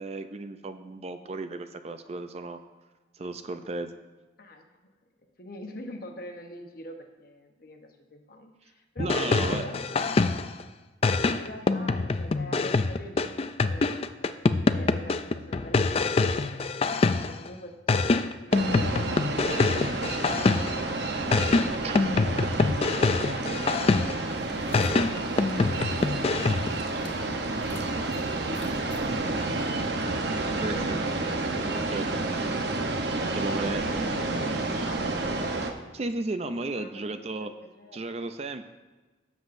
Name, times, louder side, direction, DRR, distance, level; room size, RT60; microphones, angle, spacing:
voice 1, 0.0-2.6 3.1-3.9 9.0-9.7 21.8-22.0 30.5-31.0 31.6-32.1 33.3-33.8 35.9-37.5 37.9-38.7, right 3 dB, 35° right, 9 dB, 0.4 m, -34 dB
voice 2, 4.4-4.7 5.4-10.5 11.3-19.9 20.3-23.3 30.6-31.6 33.8-35.6 36.5-38.3, left 1 dB, 50° left, 4 dB, 1.1 m, -44 dB
sound 1, 9.0-10.6 11.0-17.5 17.9-20.9 21.3-24.3 24.7-26.8, left 3 dB, 30° left, 0.3 m, -25 dB
sound 2, 18.5-35.7, right 2 dB, 60° right, 0.9 m, -30 dB
sound 3, 24.3-29.9, left 2 dB, 70° left, 1.2 m, -50 dB
17.5 x 7.4 x 2.6 m, 1.2 s
head